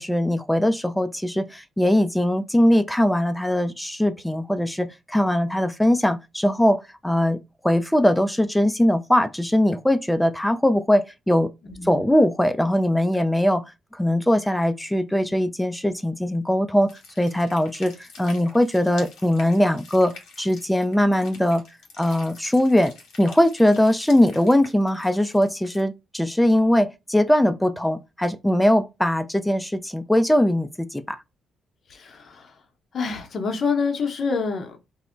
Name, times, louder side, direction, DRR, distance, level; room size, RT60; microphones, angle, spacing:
voice 1, 0.0-7.4 7.6-11.5 11.8-13.6 14.0-16.9 17.2-20.1 20.4-21.6 22.0-22.9 23.2-31.2, left 1 dB, 5° left, 0.3 m, -21 dB
voice 2, 11.6-12.1 31.9-32.6 32.9-34.8, left 5 dB, 50° left, 0.6 m, -27 dB
sound 1, 16.8-25.8, left 4 dB, 80° left, 0.8 m, -47 dB
2.1 x 2.0 x 3.7 m
cardioid pair, 90°, 0 cm